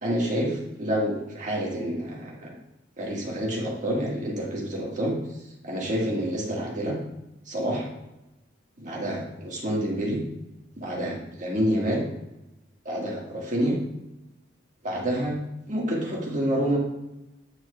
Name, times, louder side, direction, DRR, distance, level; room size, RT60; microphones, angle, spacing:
voice 1, 0.0-2.6 3.0-5.1 5.6-7.0 7.5-7.8 8.8-10.2 10.8-12.0 12.8-13.7 14.8-15.4 15.7-16.8, equal, 40° right, -3 dB, 1.7 m, -28 dB
9.4 x 5.9 x 2.3 m, 0.93 s
head